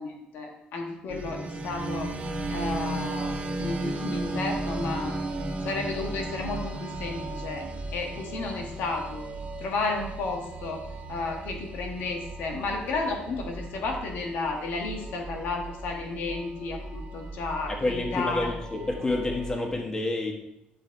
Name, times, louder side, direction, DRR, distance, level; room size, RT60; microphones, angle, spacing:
voice 1, 0.0-2.1 2.5-5.2 5.6-7.6 7.9-9.2 9.6-10.8 11.1-18.5, left 3 dB, 80° left, 1 dB, 1.9 m, -32 dB
sound 1, 1.1-19.7, right 2 dB, 45° right, 1.6 m, -35 dB
voice 2, 17.7-20.3, left 2 dB, 20° left, 1 dB, 1.8 m, -29 dB
10.5 x 5.1 x 4.7 m, 0.83 s
cardioid pair, 90°, 3 cm